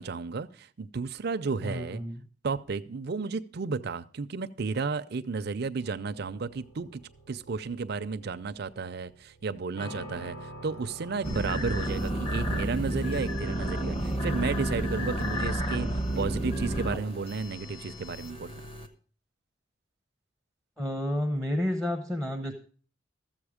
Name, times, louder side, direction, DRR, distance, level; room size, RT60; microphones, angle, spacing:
voice 1, 0.0-2.0 2.4-7.0 7.3-15.9 16.2-18.6, right 4 dB, 55° right, 10 dB, 0.5 m, -33 dB
voice 2, 1.6-2.2 20.8-22.5, left 1 dB, 5° left, 4 dB, 0.7 m, -30 dB
sound 1, 5.8-18.8, right 1 dB, 60° left, 3.1 m, -49 dB
sound 2, 11.2-18.9, right 1 dB, 30° left, 1.1 m, -31 dB
13.5 x 7.6 x 4.9 m, 0.41 s
head